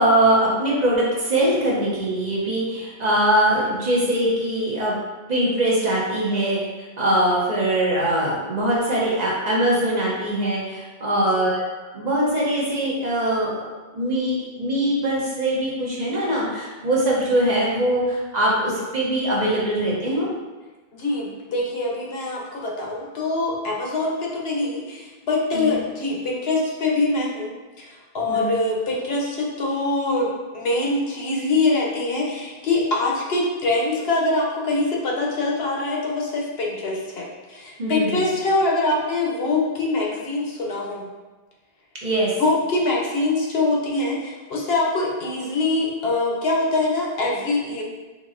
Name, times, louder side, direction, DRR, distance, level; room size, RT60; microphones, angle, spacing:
voice 1, 0.0-5.0 5.3-11.6 11.9-13.7 13.9-20.3 25.5-25.8 28.3-28.6 37.8-38.2 42.0-42.3, right 1 dB, 45° right, -5 dB, 0.8 m, -22 dB
voice 2, 20.9-30.3 30.5-41.0 42.4-47.8, left 2 dB, 75° left, -2 dB, 0.9 m, -24 dB
3.8 x 3.0 x 2.5 m, 1.2 s
omnidirectional pair, 1.1 m